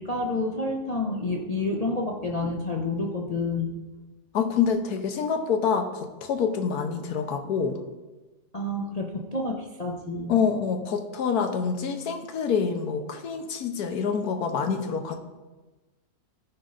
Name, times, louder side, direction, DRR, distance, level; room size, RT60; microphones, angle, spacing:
voice 1, 0.0-3.8 8.5-10.4, left 2 dB, 45° left, 0 dB, 0.5 m, -29 dB
voice 2, 4.3-7.8 10.3-15.2, left 6 dB, 65° left, 7 dB, 1.3 m, -26 dB
14.0 x 5.3 x 3.9 m, 1.2 s
omnidirectional pair, 1.9 m